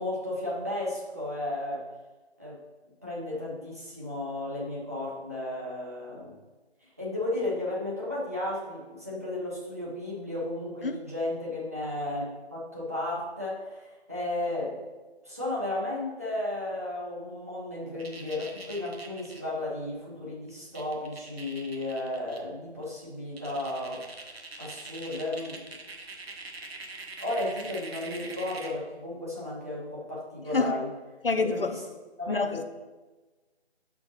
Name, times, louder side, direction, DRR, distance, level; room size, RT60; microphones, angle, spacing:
voice 1, 0.0-1.8 2.4-2.6 3.0-6.4 6.8-14.8 15.2-24.0 24.6-25.8 27.2-30.9 31.3-31.8 32.2-32.6, left 1 dB, 15° right, -7 dB, 0.6 m, -34 dB
sound 1, 18.0-19.4 20.5-20.6 20.7-22.4 22.8-22.9 23.4-28.8, right 3 dB, 65° right, 1.1 m, -43 dB
voice 2, 31.2-31.8 32.3-32.6, left 4 dB, 55° left, 8 dB, 0.5 m, -27 dB
5.8 x 4.4 x 4.0 m, 1.2 s
figure-of-eight pair, 155°, 33 cm